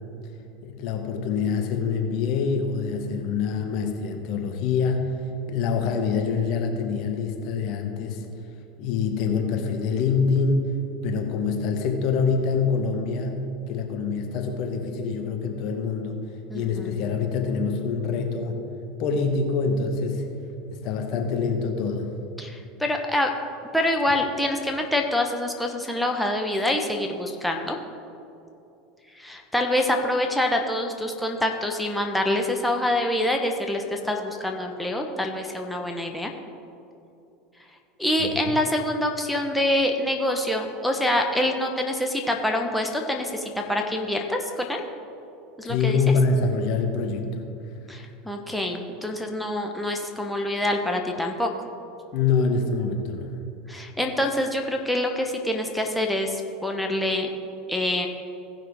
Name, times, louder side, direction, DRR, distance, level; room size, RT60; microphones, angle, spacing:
voice 1, 0.6-8.3 8.8-10.8 11.0-18.6 19.0-20.3 20.7-22.1 38.2-38.6 45.6-47.5 52.1-53.4, left 5 dB, 55° left, 3 dB, 1.2 m, -25 dB
voice 2, 16.5-17.0 22.4-23.3 23.7-27.8 29.1-36.3 38.0-44.8 45.6-46.0 47.9-51.5 53.7-57.3 57.7-58.1, left 1 dB, 5° left, 2 dB, 1.1 m, -26 dB
17.0 x 5.7 x 3.7 m, 2.7 s
hypercardioid pair, 85°, 0 cm